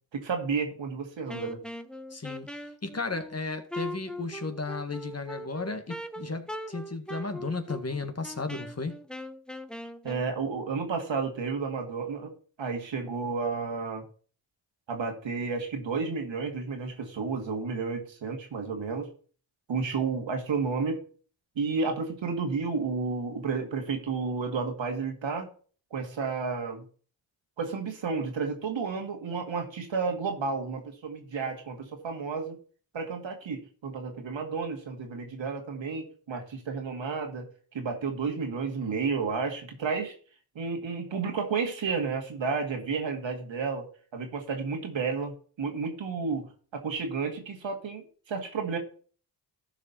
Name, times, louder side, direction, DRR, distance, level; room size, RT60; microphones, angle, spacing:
voice 1, 0.1-1.6 10.0-12.3 12.6-14.0 14.9-19.1 19.7-21.0 21.6-25.5 25.9-26.8 27.6-32.6 32.9-40.2 40.6-43.9 44.1-46.5 46.7-48.8, right 5 dB, 75° right, 2.2 m, -31 dB
Wind instrument woodwind instrument, 1.3-10.3, equal, ahead, 1.0 m, -41 dB
voice 2, 2.1-8.9, left 3 dB, 30° left, 1.7 m, -34 dB
13.5 x 5.1 x 4.1 m
cardioid pair, 45°, 46 cm